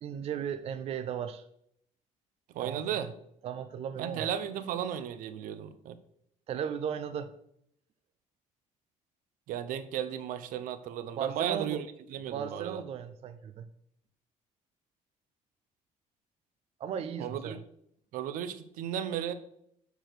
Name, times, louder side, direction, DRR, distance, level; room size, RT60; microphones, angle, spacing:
voice 1, 0.0-1.4 2.6-3.1 3.4-4.3 6.5-7.3 11.2-11.8 12.3-13.7 16.8-17.6, right 8 dB, 50° right, 10 dB, 0.5 m, -36 dB
voice 2, 2.5-3.1 4.0-6.0 9.5-12.8 17.2-17.6 18.1-19.3, right 9 dB, 85° right, 12 dB, 0.7 m, -35 dB
6.9 x 4.7 x 5.9 m, 0.73 s
cardioid pair, 160°, 14 cm